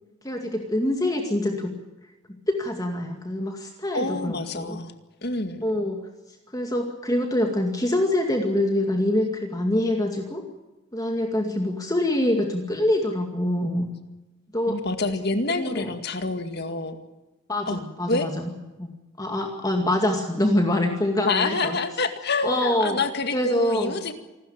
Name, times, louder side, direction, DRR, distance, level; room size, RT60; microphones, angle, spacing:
voice 1, 0.2-1.7 2.5-4.8 5.6-6.0 6.5-10.4 10.9-13.9 14.5-14.8 15.6-15.9 17.5-18.5 18.8-21.8 22.4-23.0 23.3-23.9, left 1 dB, 15° left, 3 dB, 2.2 m, -25 dB
voice 2, 3.9-4.9 5.2-5.6 14.7-17.0 17.7-17.8 18.1-18.3 21.2-24.1, left 3 dB, 50° left, 8 dB, 2.1 m, -27 dB
26.5 x 13.0 x 8.8 m, 1.1 s
head